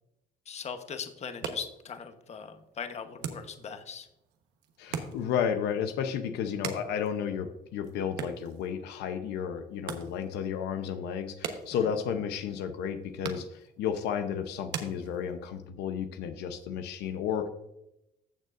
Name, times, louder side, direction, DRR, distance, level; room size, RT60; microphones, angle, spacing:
voice 1, 0.5-4.1 11.7-11.9, left 6 dB, 40° left, 8 dB, 1.0 m, -40 dB
sound 1, 1.2-15.7, right 7 dB, 85° right, 1.1 m, -44 dB
voice 2, 4.8-17.5, left 8 dB, 80° left, 7 dB, 0.8 m, -32 dB
15.0 x 6.5 x 2.5 m, 0.87 s
cardioid pair, 110°, 17 cm